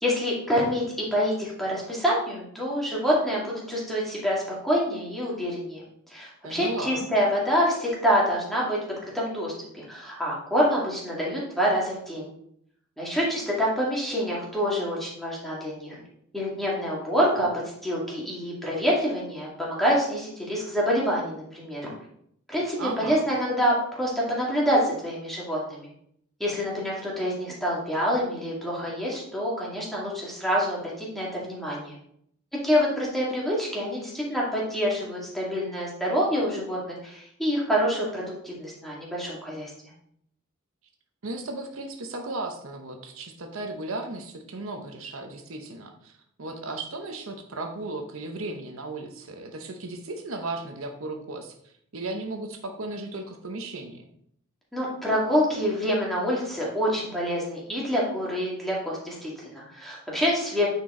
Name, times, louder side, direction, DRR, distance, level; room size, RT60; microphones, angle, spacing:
voice 1, 0.0-0.8 1.1-5.8 6.1-8.8 9.1-12.3 13.0-16.0 16.3-17.5 17.8-21.8 22.5-25.9 26.4-32.0 32.6-39.7 54.7-60.7, equal, ahead, -5 dB, 2.1 m, -26 dB
voice 2, 6.4-7.1 22.8-23.2 41.2-54.1, right 2 dB, 65° right, 4 dB, 0.9 m, -35 dB
9.1 x 4.5 x 3.8 m, 0.70 s
head